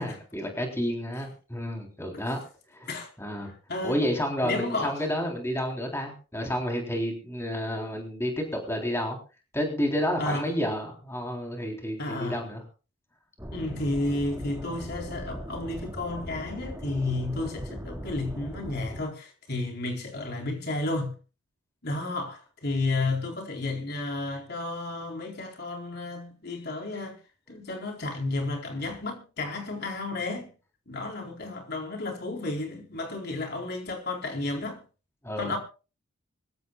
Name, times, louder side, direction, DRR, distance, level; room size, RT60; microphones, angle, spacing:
voice 1, 0.0-2.4 2.7-2.9 3.2-3.5 3.8-9.2 9.5-12.6 35.2-35.6, equal, 10° left, 3.6 m, -30 dB
voice 2, 3.7-4.0 4.4-5.0 10.2-10.5 12.0-12.5 13.5-21.1 21.8-27.2 27.5-30.5 30.9-34.8 35.4-35.6, left 2 dB, 50° left, 4.3 m, -32 dB
sound 1, 13.4-19.0, equal, 10° right, 2.2 m, -39 dB
25.0 x 15.5 x 2.4 m
head